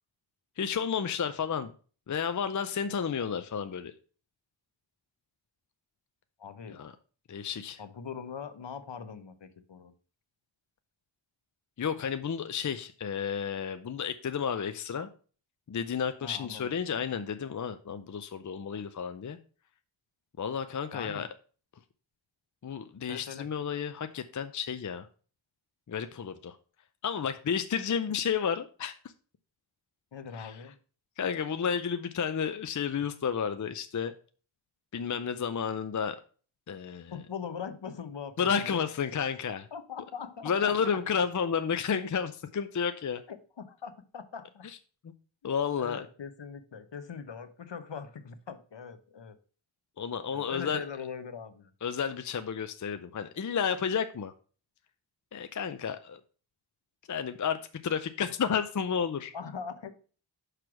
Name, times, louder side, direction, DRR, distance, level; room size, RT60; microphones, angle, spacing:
voice 1, 0.6-1.7 2.1-3.9 6.7-6.9 7.3-7.8 11.8-15.1 15.7-19.4 20.4-21.3 22.6-25.1 25.9-26.6 27.0-28.9 30.4-30.5 31.2-34.1 34.9-36.2 36.7-37.1 38.4-39.7 40.4-43.2 45.0-45.1 45.4-46.0 50.0-50.8 51.8-54.3 55.3-56.2 57.1-59.3, left 7 dB, 40° left, 0.5 m, -31 dB
voice 2, 6.4-6.8 7.8-9.9 16.2-16.7 20.9-21.3 23.1-23.5 30.1-30.7 37.1-38.8 39.7-40.7 43.3-44.7 45.4-49.4 50.3-51.7 59.3-59.9, left 6 dB, 60° left, 0.8 m, -41 dB
6.1 x 3.3 x 5.8 m
wide cardioid pair, 60°, 48 cm